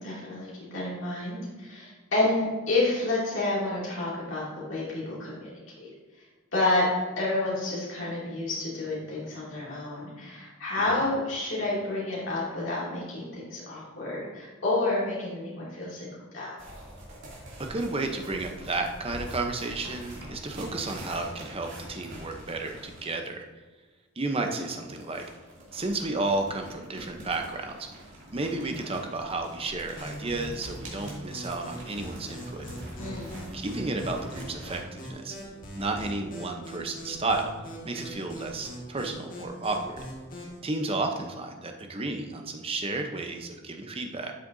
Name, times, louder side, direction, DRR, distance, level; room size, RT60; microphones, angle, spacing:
voice 1, 0.0-4.4 4.7-5.9 6.5-6.8 7.2-16.5 33.0-33.4, left 2 dB, 60° left, -7 dB, 2.5 m, -29 dB
sound 1, 16.6-23.1 24.4-34.8, right 1 dB, 55° right, 2.6 m, -44 dB
voice 2, 17.6-23.5 24.2-25.2 25.7-28.0 28.3-32.6 33.5-35.4 35.7-37.5 37.8-40.0 40.6-44.3, right 2 dB, 25° right, 4 dB, 0.7 m, -32 dB
sound 2, 30.0-40.6, equal, 40° left, 1.7 m, -42 dB
12.0 x 6.6 x 2.7 m, 1.3 s
head